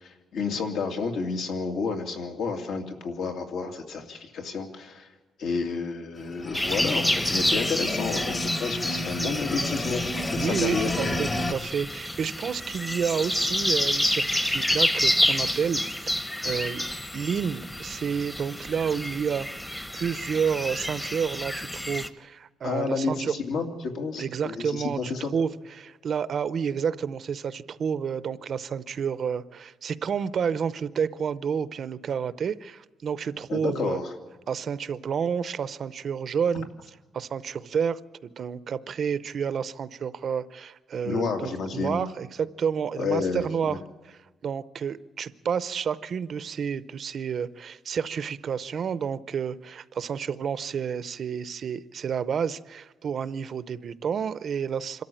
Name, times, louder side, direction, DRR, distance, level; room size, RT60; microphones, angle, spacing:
voice 1, 0.0-5.1 5.4-10.1 10.3-10.9 22.6-25.3 33.5-34.0 41.0-42.0 43.0-43.8, left 4 dB, 75° left, 3 dB, 2.7 m, -30 dB
sound 1, 6.2-11.5, left 2 dB, 25° left, 1.2 m, -31 dB
sound 2, 6.5-22.1, left 1 dB, 10° left, 0.9 m, -29 dB
voice 2, 10.3-15.8 16.4-16.8 17.1-23.3 24.2-34.0 34.5-36.7 37.1-43.8 44.0-55.0, right 7 dB, 45° right, 15 dB, 0.6 m, -30 dB
26.0 x 13.5 x 8.9 m, 1.3 s
cardioid pair, 160°, 0 cm